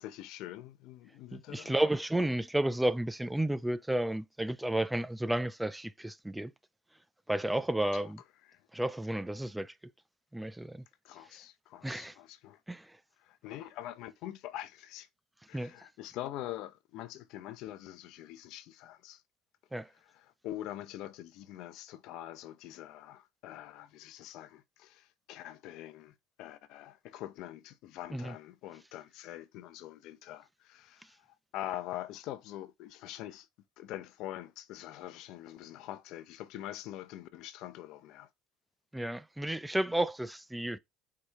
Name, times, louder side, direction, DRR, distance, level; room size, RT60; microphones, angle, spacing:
voice 1, 0.0-1.7 8.0-8.1 8.5-8.6 11.0-12.6 13.2-15.1 15.5-19.2 20.1-31.3 31.5-33.5 33.8-38.3, left 13 dB, 65° left, 0.6 m, -44 dB
voice 2, 1.3-6.5 7.3-8.2 8.7-9.7 10.3-10.8 11.8-12.2 12.7-13.0 15.5-15.7 19.7-19.9 28.1-28.3 38.9-40.8, right 1 dB, 5° right, 0.4 m, -32 dB
4.7 x 2.3 x 4.5 m
hypercardioid pair, 75°, 0 cm